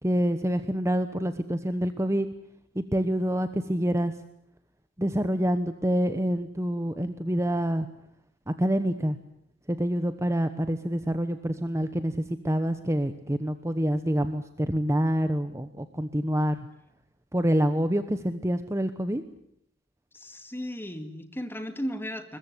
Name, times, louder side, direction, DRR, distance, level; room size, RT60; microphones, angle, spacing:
voice 1, 0.0-2.3 2.7-4.1 5.0-7.9 8.5-9.2 9.7-16.6 17.3-19.2, equal, 15° right, 10 dB, 1.1 m, -27 dB
voice 2, 20.1-22.4, equal, 10° left, 8 dB, 2.3 m, -35 dB
22.0 x 21.5 x 9.6 m, 0.73 s
head